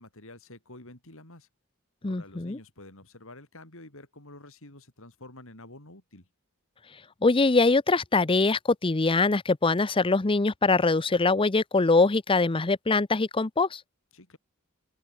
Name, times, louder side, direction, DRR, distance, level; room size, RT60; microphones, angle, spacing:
voice 1, 0.0-1.5 2.0-6.3 14.1-14.4, left 2 dB, 65° left, 6.2 m, -49 dB
voice 2, 2.0-2.6 7.2-13.8, left 3 dB, 25° left, 0.7 m, -23 dB
open air
head